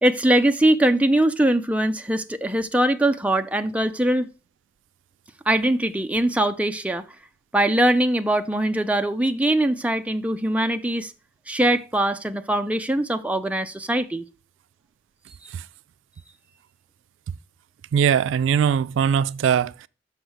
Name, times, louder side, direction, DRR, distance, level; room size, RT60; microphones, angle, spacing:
voice 1, 0.0-4.3 5.5-7.0 7.5-11.1 11.5-14.3, right 1 dB, 5° right, 0.4 m, -22 dB
voice 2, 17.9-19.9, right 8 dB, 80° right, 0.3 m, -21 dB
6.5 x 5.6 x 6.2 m
head